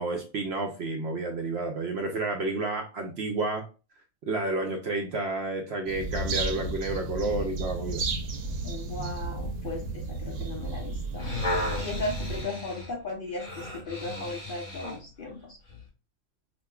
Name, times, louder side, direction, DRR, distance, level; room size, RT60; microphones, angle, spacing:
voice 1, 0.0-3.6 4.3-8.0, right 2 dB, 65° right, 3 dB, 0.6 m, -30 dB
sound 1, 5.9-12.4, right 3 dB, 90° right, 1.2 m, -33 dB
voice 2, 8.6-15.6, left 2 dB, 55° left, 0 dB, 0.6 m, -37 dB
sound 2, 11.0-15.0 15.7-15.8, left 1 dB, 25° left, 1.5 m, -35 dB
5.2 x 2.1 x 2.2 m, 0.33 s
omnidirectional pair, 1.5 m